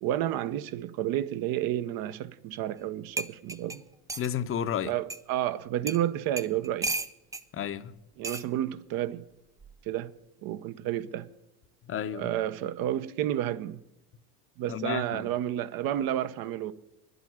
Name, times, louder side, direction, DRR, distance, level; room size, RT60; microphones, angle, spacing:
voice 1, 0.0-3.8 4.8-6.9 8.2-9.2 9.8-10.1 10.4-11.3 12.1-13.8 14.6-16.7, right 12 dB, 50° right, 0.9 m, -31 dB
sound 1, 2.8-2.9 3.2-4.3 5.1-5.2 5.9-6.0 6.4-7.4 8.2-8.5 9.6-9.9, right 3 dB, 10° right, 0.4 m, -34 dB
voice 2, 4.2-4.9 7.5-7.9 11.9-12.3 14.7-15.3, left 9 dB, 30° left, 0.9 m, -32 dB
10.5 x 8.0 x 9.4 m
hypercardioid pair, 90°, 44 cm